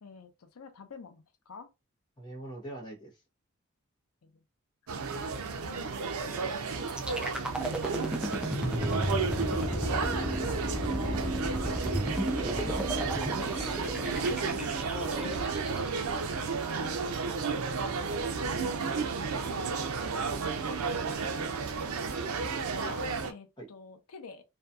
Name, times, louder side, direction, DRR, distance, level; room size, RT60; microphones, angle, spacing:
voice 1, 0.0-1.7 4.2-4.3 8.7-9.1 10.4-11.2 14.4-15.5 22.4-24.4, left 4 dB, 85° left, 0.5 m, -48 dB
voice 2, 2.2-3.2 12.1-13.8 23.6-23.7, right 1 dB, 20° left, 0.9 m, -42 dB
sound 1, 4.9-23.3, right 4 dB, 85° right, 0.4 m, -33 dB
sound 2, 6.9-16.9, right 1 dB, 5° right, 0.3 m, -34 dB
sound 3, 8.6-16.2, equal, 65° right, 1.1 m, -38 dB
2.7 x 2.3 x 2.3 m
head